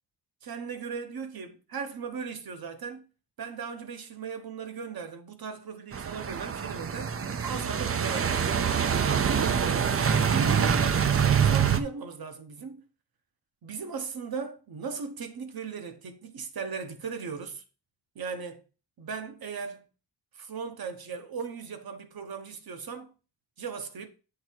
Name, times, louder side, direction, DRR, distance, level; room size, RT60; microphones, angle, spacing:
voice 1, 0.4-3.0 3.4-7.1 7.4-8.4 9.0-9.9 10.2-12.9 13.6-17.6 18.1-18.6 19.0-19.8 20.3-23.1 23.6-24.1, right 5 dB, 55° right, 0.9 m, -37 dB
sound 1, 5.9-11.8, right 7 dB, 35° right, 0.4 m, -25 dB
7.9 x 3.3 x 4.5 m
wide cardioid pair, 160°, 42 cm